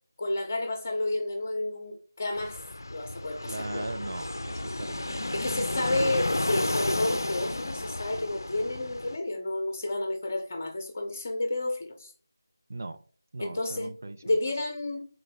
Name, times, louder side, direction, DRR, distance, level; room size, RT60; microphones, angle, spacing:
voice 1, 0.2-2.6 2.9-3.9 5.3-12.1 13.4-13.9 14.2-15.1, left 2 dB, 30° left, 0.8 m, -31 dB
Fixed-wing aircraft airplane, 2.3-9.2, left 1 dB, 65° left, 0.4 m, -32 dB
voice 2, 3.5-6.0 12.7-13.0 13.3-14.4, right 2 dB, 40° right, 0.3 m, -39 dB
3.8 x 3.0 x 4.6 m
figure-of-eight pair, 165°, 2 cm